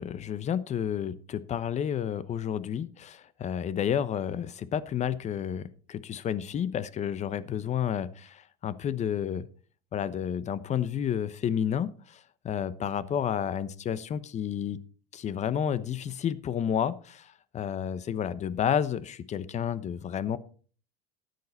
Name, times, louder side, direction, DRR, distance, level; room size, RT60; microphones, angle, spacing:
voice 1, 0.0-9.5 9.9-14.8 15.1-20.4, left 9 dB, 35° left, 16 dB, 1.0 m, -31 dB
13.0 x 9.5 x 4.2 m, 0.41 s
hypercardioid pair, 85°, 19 cm